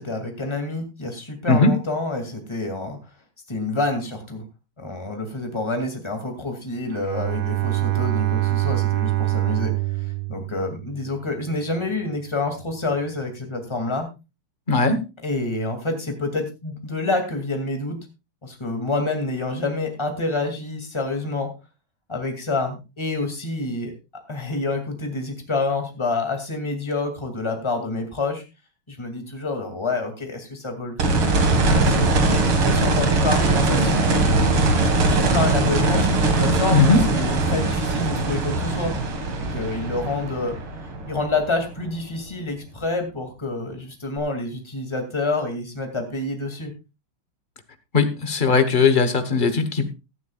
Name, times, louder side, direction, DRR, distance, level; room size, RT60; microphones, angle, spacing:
voice 1, 0.0-3.0 3.5-4.4 4.8-9.7 10.0-14.1 15.2-18.0 18.4-21.5 22.1-23.9 24.3-28.4 28.9-31.0 31.4-32.1 32.6-34.5 34.8-38.9 39.5-40.5 41.1-46.7, left 3 dB, 15° left, 4 dB, 2.4 m, -28 dB
Bowed string instrument, 6.9-11.2, right 18 dB, 50° right, 1.5 m, -24 dB
voice 2, 14.7-15.0 36.7-37.0 47.9-49.9, left 4 dB, 30° left, 9 dB, 1.2 m, -18 dB
sound 1, 31.0-41.9 44.2-44.3, right 2 dB, 80° right, 2.8 m, -21 dB
16.5 x 12.0 x 2.4 m, 0.27 s
omnidirectional pair, 2.3 m